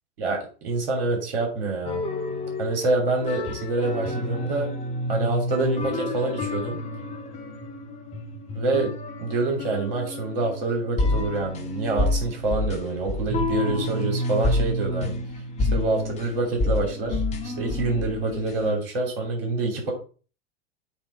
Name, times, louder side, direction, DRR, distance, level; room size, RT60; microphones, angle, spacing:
voice 1, 0.2-2.0 2.6-4.7 5.1-6.8 8.5-8.9 9.2-15.2 15.6-19.9, right 3 dB, 60° right, 1 dB, 3.1 m, -26 dB
sound 1, 1.8-18.7, left 2 dB, 20° left, 1.5 m, -29 dB
8.7 x 3.2 x 5.5 m, 0.38 s
figure-of-eight pair, 90°, 33 cm